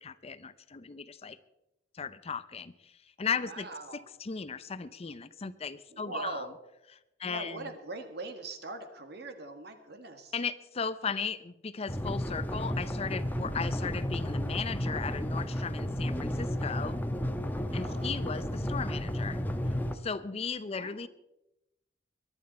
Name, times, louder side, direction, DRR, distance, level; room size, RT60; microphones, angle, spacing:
voice 1, 0.0-1.4 1.9-2.9 3.2-3.7 4.2-6.4 7.2-7.7 10.3-17.0 17.7-19.4 20.0-21.1, left 5 dB, 35° left, 15 dB, 0.5 m, -36 dB
voice 2, 3.4-4.1 5.9-6.5 7.2-10.3 17.6-18.3 20.7-21.1, right 2 dB, 65° right, 7 dB, 1.9 m, -41 dB
sound 1, 11.9-20.0, equal, 10° left, 1.0 m, -32 dB
23.0 x 11.0 x 4.3 m, 0.90 s
head